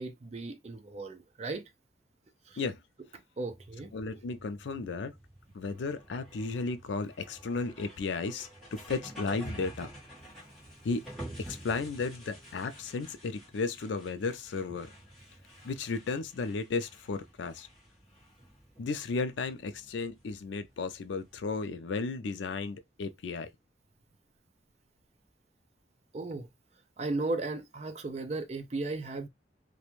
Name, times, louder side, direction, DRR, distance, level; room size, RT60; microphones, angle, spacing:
voice 1, 0.0-1.6 2.5-2.6 3.4-3.9 26.1-26.5 27.0-29.3, right 3 dB, 35° right, 0.4 m, -35 dB
sound 1, 3.5-21.4, equal, ahead, 1.1 m, -49 dB
voice 2, 3.9-5.1 5.5-9.9 10.8-11.0 11.4-14.9 15.6-17.7 18.8-23.5, left 4 dB, 80° left, 0.4 m, -34 dB
2.5 x 2.1 x 2.9 m
head